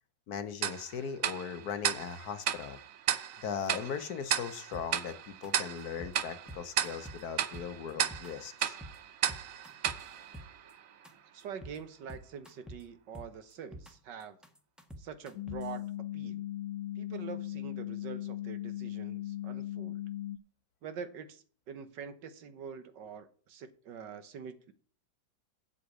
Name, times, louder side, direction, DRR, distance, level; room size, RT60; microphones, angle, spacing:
voice 1, 0.3-2.8 3.4-8.8, left 7 dB, 60° left, 1.4 m, -39 dB
Tick-tock, 0.6-11.1, right 10 dB, 60° right, 1.0 m, -35 dB
sound 1, 4.7-5.1 5.4-5.5 5.8-6.2 6.5-7.2 7.5-8.3 8.6-9.0 9.3-10.7 11.0-11.1 11.4-11.8 12.1-12.8 13.1-13.9 14.2-15.8, equal, ahead, 1.1 m, -47 dB
voice 2, 11.3-14.4 15.0-15.9 16.1-16.5 17.0-20.0 20.8-24.7, right 6 dB, 75° right, 1.7 m, -45 dB
sound 2, 15.4-20.4, left 14 dB, 80° left, 1.8 m, -38 dB
8.1 x 7.1 x 8.3 m
omnidirectional pair, 2.0 m